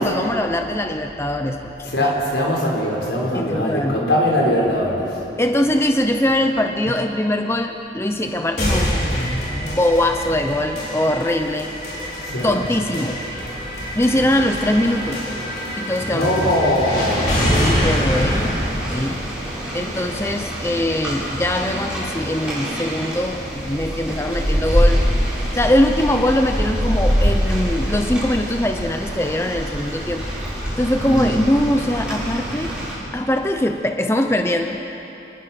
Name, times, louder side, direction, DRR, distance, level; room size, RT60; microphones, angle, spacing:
voice 1, 0.0-2.1 3.3-4.1 5.4-11.7 12.4-13.2 14.0-15.2 15.8-16.5 17.5-18.6 18.9-19.2 19.7-30.3 30.8-32.7 33.1-34.8, left 1 dB, 15° left, 5 dB, 0.7 m, -22 dB
voice 2, 1.9-5.1 12.2-12.6 16.1-17.4 31.0-31.4, left 1 dB, 80° left, -3 dB, 5.3 m, -21 dB
sound 1, 8.6-20.5, equal, 60° left, 5.4 m, -25 dB
Rain, 16.9-32.9, equal, 5° right, 7.2 m, -25 dB
27.5 x 20.0 x 6.0 m, 3.0 s
head